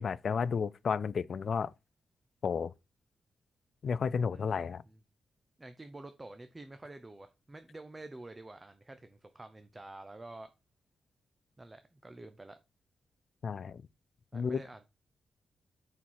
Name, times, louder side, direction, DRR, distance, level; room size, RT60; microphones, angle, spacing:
voice 1, 0.0-1.7 2.4-2.7 3.8-4.8 13.4-13.9 14.3-14.6, left 6 dB, 50° left, 0.4 m, -32 dB
voice 2, 4.3-5.0 5.6-10.5 11.6-12.6 14.3-14.9, right 2 dB, 15° right, 0.6 m, -49 dB
9.8 x 4.3 x 4.6 m
wide cardioid pair, 155°, 0 cm